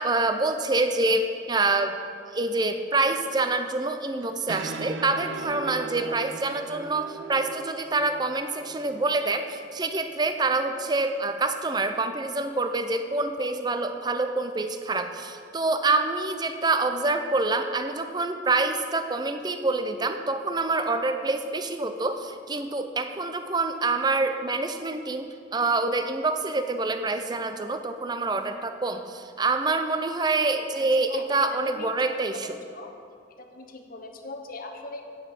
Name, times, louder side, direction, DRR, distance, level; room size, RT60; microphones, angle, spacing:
voice 1, 0.0-1.9 2.3-32.6, right 3 dB, 20° right, 8 dB, 0.5 m, -26 dB
sound 1, 4.2-11.4, right 4 dB, 85° right, 0.5 m, -40 dB
voice 2, 30.8-31.2 31.7-32.9 33.4-35.0, left 3 dB, 50° left, 4 dB, 0.9 m, -41 dB
9.0 x 8.0 x 5.9 m, 2.5 s
head